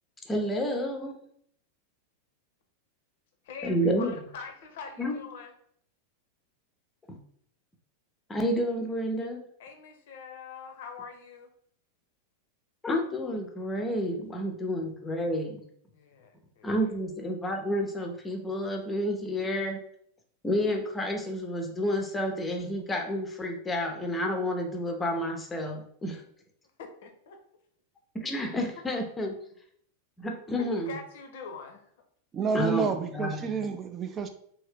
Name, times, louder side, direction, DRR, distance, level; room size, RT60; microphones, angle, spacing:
voice 1, 0.3-1.2 3.6-4.1 5.0-5.1 7.1-7.2 8.3-9.4 12.8-15.6 16.6-19.8 20.4-26.2 28.2-29.4 30.2-31.0 32.5-33.6, equal, 15° left, 3 dB, 0.6 m, -30 dB
voice 2, 3.4-5.5 9.6-11.5 15.9-16.7 26.8-27.4 30.6-31.8, left 5 dB, 55° left, 5 dB, 0.6 m, -43 dB
voice 3, 32.3-34.3, right 6 dB, 25° right, 8 dB, 0.4 m, -29 dB
2.8 x 2.7 x 3.3 m, 0.65 s
figure-of-eight pair, 90°, 0 cm